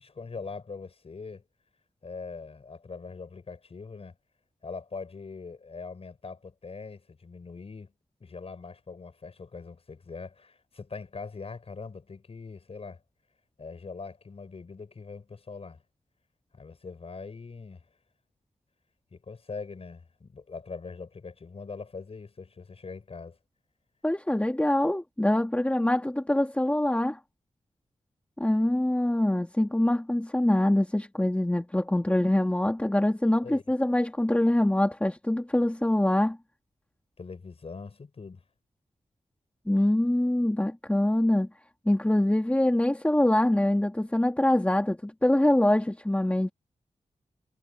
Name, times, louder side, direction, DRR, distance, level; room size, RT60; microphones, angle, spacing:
voice 1, 0.0-1.4 2.0-4.1 4.6-7.9 8.2-13.0 13.6-15.8 16.5-17.9 19.1-23.4 32.9-33.0 33.4-33.6 37.2-38.4, left 4 dB, 55° left, 5.9 m, -42 dB
voice 2, 24.0-27.2 28.4-36.4 39.7-41.5 41.9-46.5, left 1 dB, 10° left, 2.3 m, -24 dB
wide cardioid pair, 95°, 12 cm